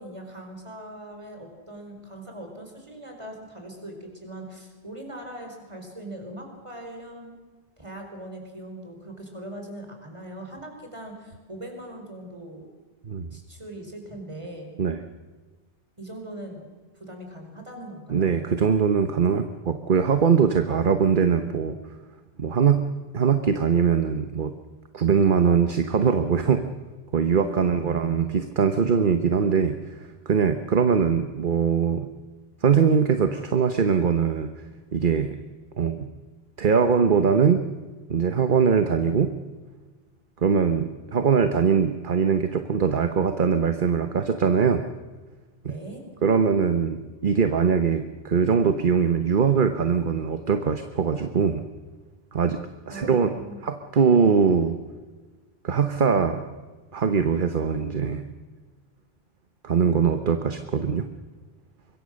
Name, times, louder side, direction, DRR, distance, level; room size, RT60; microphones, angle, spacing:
voice 1, 0.0-7.4 7.8-12.7 13.3-14.7 16.0-16.6 16.9-18.3 27.4-28.4 45.7-46.0 52.9-53.6, right 1 dB, 30° right, 3 dB, 4.8 m, -40 dB
voice 2, 18.1-21.8 22.4-22.9 23.1-24.5 24.9-26.7 27.1-32.1 32.6-34.5 34.9-35.4 35.8-36.1 36.6-37.6 38.1-39.3 40.4-44.8 45.6-45.8 46.2-51.6 52.3-54.8 55.6-56.5 56.9-58.2 59.6-61.1, right 6 dB, 55° right, 8 dB, 1.2 m, -22 dB
25.0 x 22.0 x 6.4 m, 1.3 s
omnidirectional pair, 1.1 m